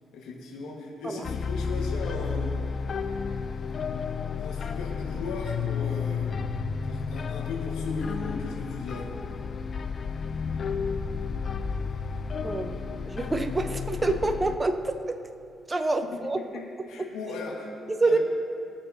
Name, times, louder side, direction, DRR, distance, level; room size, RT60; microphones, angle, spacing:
voice 1, 0.1-2.6 4.4-6.4 6.8-9.1 16.5-17.7 18.0-18.2, left 3 dB, 90° left, -2 dB, 1.5 m, -37 dB
sound 1, 1.2-14.6, left 5 dB, 45° left, 0.5 m, -32 dB
voice 2, 12.4-15.3 15.7-16.4 16.8-17.1 17.9-18.2, right 2 dB, 20° right, 7 dB, 0.7 m, -27 dB
20.0 x 7.0 x 2.7 m, 2.3 s
cardioid pair, 90°, 0 cm